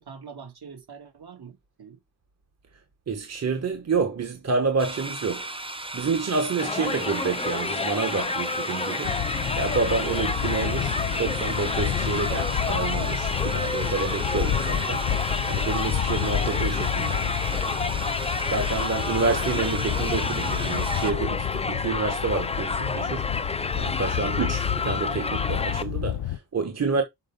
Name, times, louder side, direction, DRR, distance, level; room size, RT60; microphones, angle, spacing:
voice 1, 0.0-2.0 6.8-7.1 10.1-10.2 24.0-24.3, right 6 dB, 65° right, 2.8 m, -45 dB
voice 2, 3.1-5.5 5.9-9.2 9.6-15.1 15.5-17.2 18.4-27.0, right 4 dB, 40° right, 1.2 m, -28 dB
sound 1, 4.8-21.1, right 2 dB, 15° right, 0.8 m, -36 dB
Crowd, 6.6-25.8, left 4 dB, 15° left, 0.4 m, -30 dB
sound 2, 9.0-26.4, left 11 dB, 85° left, 0.6 m, -30 dB
6.4 x 5.3 x 5.3 m
wide cardioid pair, 175°, 42 cm